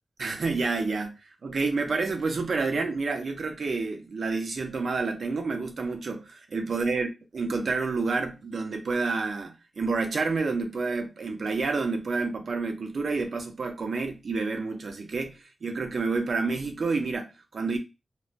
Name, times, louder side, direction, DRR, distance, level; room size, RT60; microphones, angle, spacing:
voice 1, 0.2-17.8, right 4 dB, 65° right, 0.6 m, -29 dB
3.2 x 2.1 x 2.5 m
wide cardioid pair, 120°, 0 cm